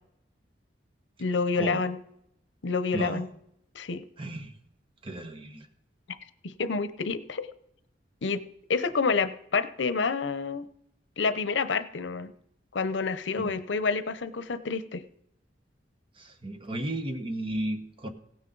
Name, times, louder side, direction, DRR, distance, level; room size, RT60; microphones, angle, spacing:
voice 1, 1.2-2.0 2.6-3.3 3.7-4.1 6.4-7.5 8.2-8.4 8.7-10.7 11.2-12.3 12.7-15.0, left 4 dB, 85° left, 13 dB, 0.7 m, -28 dB
voice 2, 2.9-3.3 4.2-4.5 5.0-5.7 13.4-13.6 16.2-18.1, right 1 dB, 30° right, 7 dB, 1.1 m, -34 dB
16.5 x 9.5 x 3.9 m, 0.76 s
head